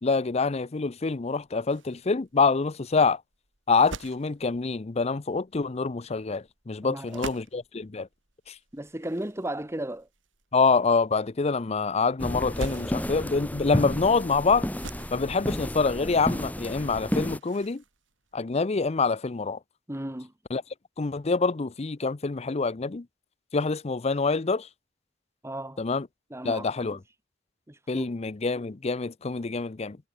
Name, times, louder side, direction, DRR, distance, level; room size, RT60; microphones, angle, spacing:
voice 1, 0.0-3.2 3.7-8.1 10.5-14.7 15.1-17.8 18.3-19.6 20.5-20.6 21.0-23.0 23.5-24.7 25.8-26.1 26.4-27.0 27.9-30.0, left 4 dB, 35° left, 0.6 m, -26 dB
sound 1, 1.2-19.1, right 2 dB, 85° right, 3.7 m, -46 dB
voice 2, 6.8-7.4 8.7-10.1 19.9-20.3 25.4-25.8 26.3-27.0 27.7-28.1, right 1 dB, 15° right, 1.6 m, -35 dB
sound 2, 12.2-17.4, equal, 10° left, 2.2 m, -32 dB
head